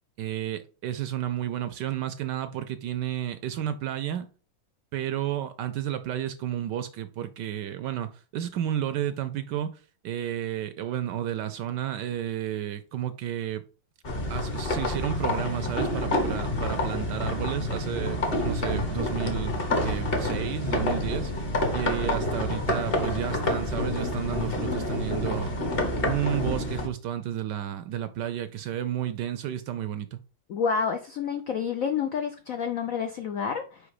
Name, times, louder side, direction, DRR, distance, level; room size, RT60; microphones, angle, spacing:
voice 1, 0.2-4.3 4.9-13.6 14.3-19.6 19.8-21.5 21.7-25.5 26.0-30.2, right 11 dB, 75° right, 1.0 m, -32 dB
sound 1, 14.0-26.9, left 1 dB, 35° left, 1.2 m, -28 dB
voice 2, 30.5-33.8, left 6 dB, 75° left, 0.7 m, -29 dB
5.1 x 5.0 x 4.8 m
omnidirectional pair, 2.2 m